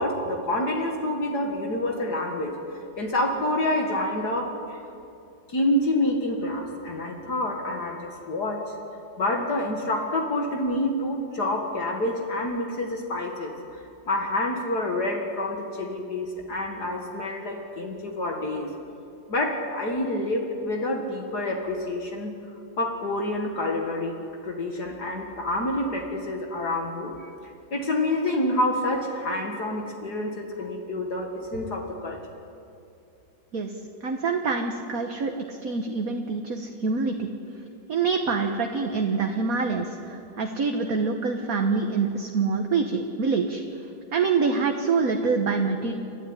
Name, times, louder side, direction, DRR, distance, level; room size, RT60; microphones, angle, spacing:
voice 1, 0.0-4.8 5.5-8.6 9.2-18.7 19.3-24.2 24.4-27.3 27.7-32.2, left 1 dB, 60° left, 1 dB, 2.5 m, -28 dB
voice 2, 34.0-37.3 37.9-43.6 44.1-45.9, right 4 dB, 50° right, 4 dB, 1.6 m, -26 dB
29.5 x 13.0 x 9.9 m, 2.6 s
omnidirectional pair, 2.0 m